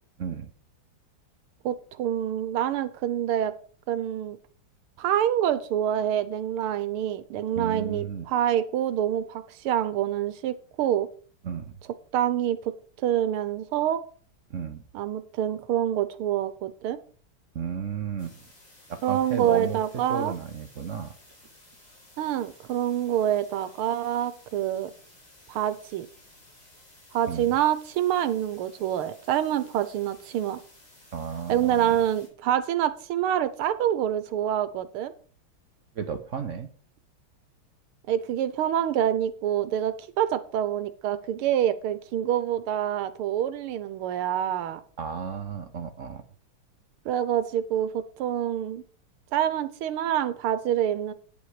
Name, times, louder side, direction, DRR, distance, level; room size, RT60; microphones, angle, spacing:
voice 1, 0.2-0.5 7.6-8.2 11.4-11.8 14.5-14.8 17.5-18.4 18.9-19.8 20.1-21.1 27.3-27.5 31.1-32.0 35.9-36.7 45.0-46.2, right 6 dB, 60° right, 8 dB, 0.8 m, -33 dB
voice 2, 1.6-3.5 3.9-4.4 5.0-11.1 12.1-12.7 13.0-14.0 14.9-17.0 19.0-20.3 22.2-24.9 25.5-26.1 27.1-30.6 31.5-35.1 38.1-44.8 47.0-48.8 49.3-51.1, right 11 dB, 85° right, 13 dB, 1.7 m, -26 dB
sound 1, 18.2-32.3, left 1 dB, 35° left, 4.2 m, -55 dB
8.9 x 8.5 x 4.9 m, 0.43 s
omnidirectional pair, 2.4 m